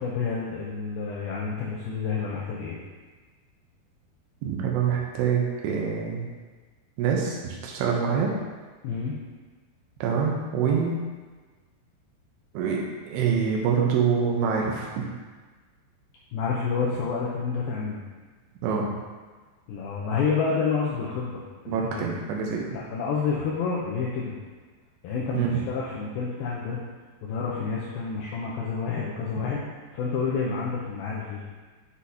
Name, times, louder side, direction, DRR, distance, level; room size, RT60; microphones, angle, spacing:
voice 1, 0.0-2.8 8.8-9.2 16.3-18.0 19.7-22.1 22.6-24.3 25.0-26.8 27.2-29.7 29.9-31.4, left 5 dB, 80° left, -5 dB, 2.3 m, -29 dB
voice 2, 4.4-6.3 7.0-8.3 10.0-10.9 12.5-14.9 18.6-18.9 21.7-22.6 25.3-25.5, right 6 dB, 80° right, -1 dB, 2.9 m, -25 dB
8.2 x 6.1 x 2.8 m, 1.4 s
omnidirectional pair, 4.9 m